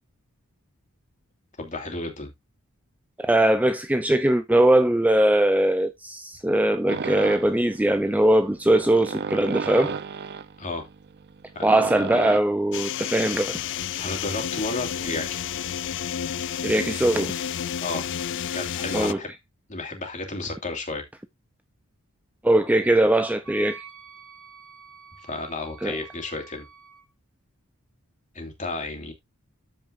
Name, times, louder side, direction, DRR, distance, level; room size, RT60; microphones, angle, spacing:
voice 1, 1.6-2.3 10.6-10.8 11.5-11.7 14.0-15.5 17.8-18.0 18.5-19.3 19.7-21.0 25.3-26.7 28.3-29.1, left 2 dB, 35° left, 2.8 m, -32 dB
voice 2, 3.2-9.9 11.6-13.6 16.6-17.4 18.9-19.2 22.4-23.8 25.8-26.0, right 1 dB, 5° right, 0.5 m, -21 dB
sound 1, 6.9-12.4, right 5 dB, 50° right, 0.6 m, -34 dB
sound 2, 12.7-19.1, left 9 dB, 55° left, 0.4 m, -31 dB
Wind instrument woodwind instrument, 23.4-27.1, right 6 dB, 65° right, 3.4 m, -47 dB
14.0 x 5.3 x 2.6 m
head